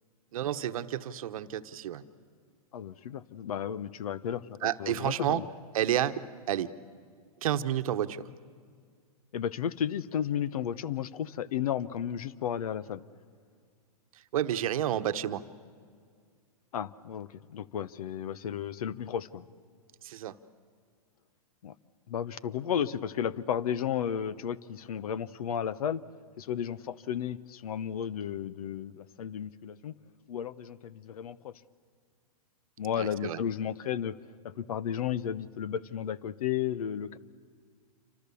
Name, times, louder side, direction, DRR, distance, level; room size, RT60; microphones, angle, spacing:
voice 1, 0.3-2.0 4.6-5.4 5.7-6.2 6.5-6.7 7.4-8.2 14.3-15.4 20.0-20.3 33.0-33.4, right 11 dB, 65° right, 11 dB, 1.1 m, -30 dB
voice 2, 2.7-5.4 9.3-13.0 16.7-19.4 21.6-21.7 22.1-26.0 26.4-29.9 30.3-31.5 32.8-34.2 34.4-37.2, left 9 dB, 70° left, 18 dB, 0.9 m, -33 dB
28.0 x 25.5 x 7.0 m, 2.1 s
hypercardioid pair, 130°, 19 cm